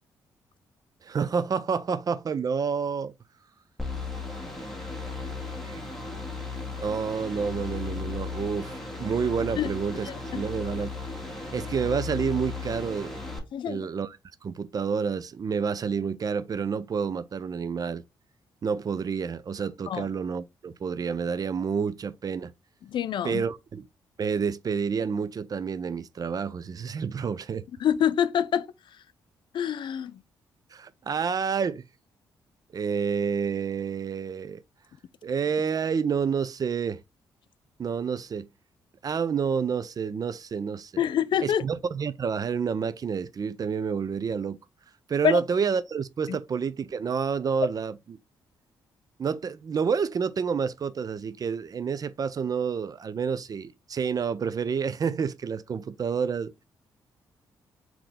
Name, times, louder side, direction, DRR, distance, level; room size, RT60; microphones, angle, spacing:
voice 1, 1.0-3.1 4.5-4.6 5.6-5.8 6.8-10.9 11.5-13.2 13.7-14.2 14.4-18.0 18.6-22.5 23.2-23.9 24.2-27.7 30.7-31.8 32.7-34.6 35.2-37.0 37.8-38.5 39.0-40.9 41.4-44.6 45.1-48.2 49.2-56.5, right 6 dB, 45° right, 0.4 m, -29 dB
sound 1, 3.8-13.4, left 4 dB, 5° left, 1.6 m, -35 dB
voice 2, 10.1-10.4 13.5-13.9 19.9-20.1 22.9-23.4 27.8-28.7 29.5-30.2 41.0-41.6 45.2-45.4 46.3-46.4, left 9 dB, 60° left, 0.4 m, -26 dB
3.8 x 3.1 x 3.4 m
supercardioid pair, 55°, 9 cm